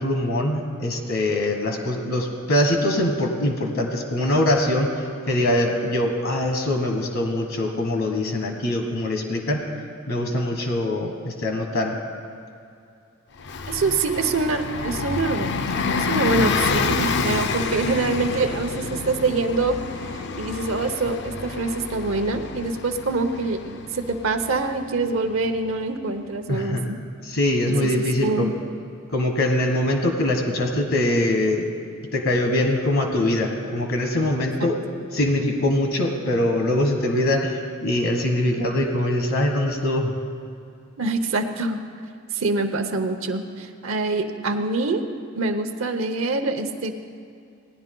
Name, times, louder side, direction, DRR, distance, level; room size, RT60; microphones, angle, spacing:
voice 1, 0.0-9.6 10.1-12.0 26.5-27.0 27.2-28.5 29.1-31.7 32.1-34.8 35.1-40.1, left 1 dB, 70° left, 3 dB, 1.2 m, -23 dB
Bus, 13.4-25.7, left 4 dB, 50° left, 0.5 m, -28 dB
voice 2, 13.7-15.5 15.9-27.0 27.7-28.5 34.6-34.7 41.0-41.8 42.3-45.0 45.3-46.9, right 3 dB, 65° right, 7 dB, 0.7 m, -25 dB
17.5 x 10.5 x 3.8 m, 2.5 s
head